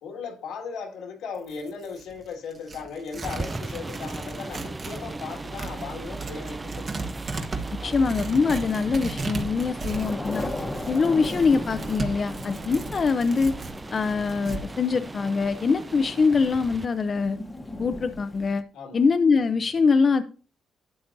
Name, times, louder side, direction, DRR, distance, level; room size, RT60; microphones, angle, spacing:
voice 1, 0.0-7.1 7.8-8.1 18.7-19.0, left 5 dB, 85° left, 2 dB, 1.9 m, -37 dB
Tearing, 1.3-5.0 5.3-14.6, right 3 dB, 45° right, 1.3 m, -36 dB
Thunder / Rain, 3.1-18.6, left 2 dB, 20° left, 1.0 m, -39 dB
sound 1, 3.2-16.9, right 3 dB, 20° right, 0.3 m, -37 dB
voice 2, 7.8-10.5 10.9-13.5 13.9-17.4 17.8-18.6 18.9-20.2, left 4 dB, 40° left, 9 dB, 0.5 m, -23 dB
11.5 x 9.1 x 2.6 m, 0.38 s
cardioid pair, 90°, 0 cm